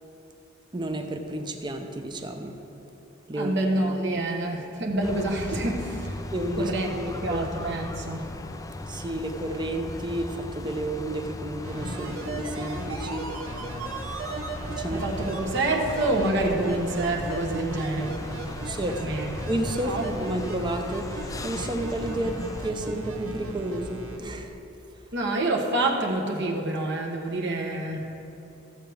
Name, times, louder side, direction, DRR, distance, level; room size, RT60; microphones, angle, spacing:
voice 1, 0.7-2.6 3.3-3.5 6.3-7.4 8.9-13.3 14.7-15.0 18.6-19.1 19.5-24.6, right 1 dB, 20° right, 5 dB, 0.7 m, -31 dB
voice 2, 3.3-6.2 6.5-6.9 7.2-8.3 11.9-12.1 14.9-18.2 19.0-19.4 19.8-20.1 25.1-28.1, right 2 dB, 55° right, 0 dB, 1.2 m, -27 dB
sound 1, 5.0-22.7, left 2 dB, 15° left, 0.3 m, -38 dB
sound 2, 11.6-24.2 24.5-24.6, right 1 dB, 85° right, 1.3 m, -36 dB
15.0 x 7.9 x 3.5 m, 3.0 s
head